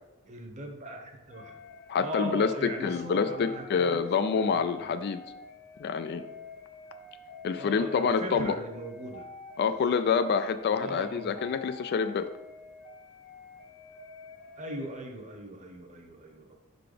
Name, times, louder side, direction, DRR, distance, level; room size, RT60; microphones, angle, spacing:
voice 1, 0.3-1.7 2.0-4.0 4.3-5.0 7.6-9.2 10.7-11.4 14.6-16.6, right 1 dB, 30° right, 4 dB, 0.9 m, -40 dB
sound 1, 1.3-14.9, left 3 dB, 75° left, 0.9 m, -48 dB
voice 2, 1.9-5.2 5.8-6.2 7.4-8.5 9.6-12.3, left 6 dB, 50° left, 10 dB, 0.3 m, -27 dB
5.6 x 4.0 x 5.0 m, 0.99 s
head